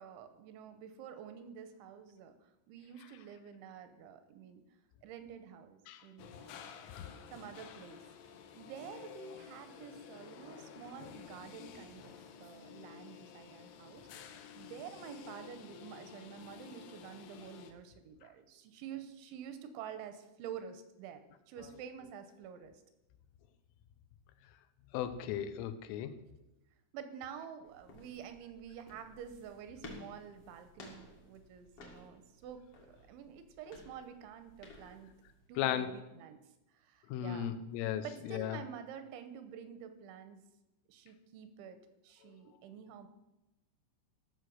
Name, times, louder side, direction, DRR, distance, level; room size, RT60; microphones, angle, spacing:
voice 1, 0.0-4.6 5.0-6.7 7.3-14.2 14.5-22.7 26.9-32.6 32.9-35.1 35.5-36.4 36.7-37.5 38.0-40.4 40.9-41.8 42.0-43.1, right 8 dB, 85° right, 9 dB, 3.0 m, -49 dB
sound 1, 6.2-17.7, left 8 dB, 75° left, 2.5 m, -52 dB
voice 2, 24.9-26.1 35.6-35.9 37.1-38.6, left 10 dB, 90° left, 10 dB, 3.3 m, -35 dB
sound 2, 27.7-35.5, left 2 dB, 55° left, 1.6 m, -55 dB
15.0 x 6.5 x 6.3 m, 0.97 s
omnidirectional pair, 5.6 m